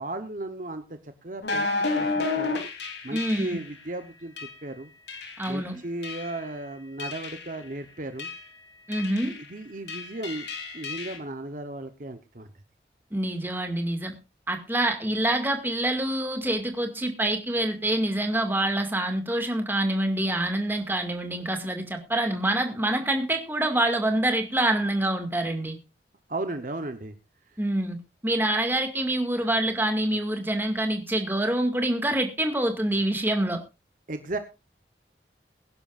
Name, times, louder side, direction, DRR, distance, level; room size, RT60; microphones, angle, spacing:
voice 1, 0.0-2.6 3.0-4.9 5.5-8.3 9.5-10.5 10.7-12.5 26.3-27.1 27.5-27.6 34.1-34.4, right 2 dB, 45° right, 8 dB, 1.0 m, -35 dB
sound 1, 1.4-3.7 4.4-4.6 5.1-5.6 6.0-6.5 7.0-7.6 8.2-8.5 8.9-9.5 9.9-11.2, left 3 dB, 75° left, 3.5 m, -31 dB
voice 2, 3.1-3.6 5.4-5.8 8.9-9.3 13.1-14.1 14.5-25.8 27.6-28.0 28.2-33.6, right 1 dB, 10° right, 5 dB, 2.2 m, -26 dB
21.5 x 11.0 x 2.5 m, 0.27 s
head